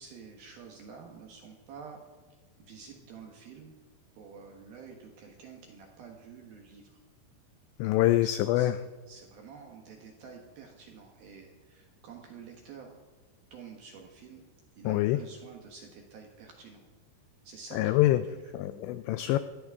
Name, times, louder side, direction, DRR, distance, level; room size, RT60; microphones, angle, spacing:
voice 1, 0.0-2.0 2.7-3.7 4.2-7.0 8.2-8.7 9.1-12.9 13.5-14.4 14.8-16.8 17.4-18.5, right 5 dB, 65° right, 1 dB, 2.5 m, -49 dB
voice 2, 7.8-8.7 14.8-15.2 17.7-18.2 18.5-19.4, left 15 dB, 85° left, 12 dB, 2.5 m, -25 dB
18.0 x 15.0 x 3.6 m, 1.3 s
omnidirectional pair, 5.6 m